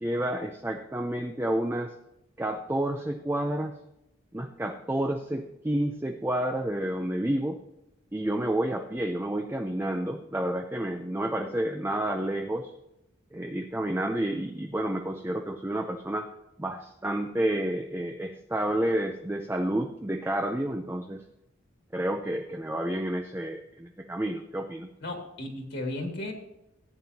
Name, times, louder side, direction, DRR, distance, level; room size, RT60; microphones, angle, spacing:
voice 1, 0.0-1.9 2.4-3.8 4.3-7.6 8.1-12.7 13.3-16.3 16.6-21.2 21.9-24.9, right 1 dB, 10° right, 4 dB, 0.5 m, -30 dB
voice 2, 25.0-26.3, left 1 dB, 55° left, 2 dB, 2.1 m, -34 dB
14.5 x 9.2 x 2.8 m, 0.86 s
head